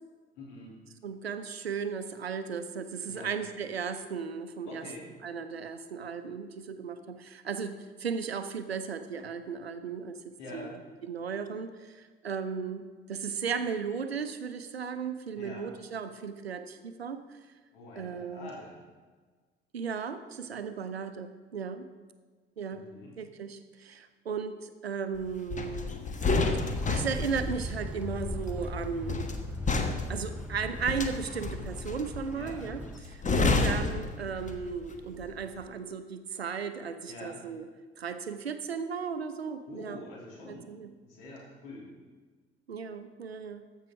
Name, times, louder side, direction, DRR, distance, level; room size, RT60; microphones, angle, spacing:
voice 1, 0.3-0.7 3.1-3.3 4.7-5.1 10.4-10.7 15.3-15.7 17.7-18.8 22.7-23.1 32.3-32.6 37.1-37.4 39.7-40.7 41.0-41.9, left 2 dB, 70° left, -3 dB, 3.2 m, -45 dB
voice 2, 1.0-4.9 5.2-10.2 10.5-17.4 18.0-18.5 19.7-21.9 22.6-22.9 23.2-25.9 26.9-29.3 30.1-37.7 38.0-40.0 40.5-40.9 42.7-43.7, right 6 dB, 90° right, 10 dB, 0.6 m, -36 dB
sound 1, 25.5-34.8 35.1-35.4, left 3 dB, 25° left, 1.2 m, -31 dB
sound 2, 26.7-33.0, left 1 dB, 5° right, 0.9 m, -39 dB
14.0 x 5.7 x 5.8 m, 1.4 s
figure-of-eight pair, 55°, 30 cm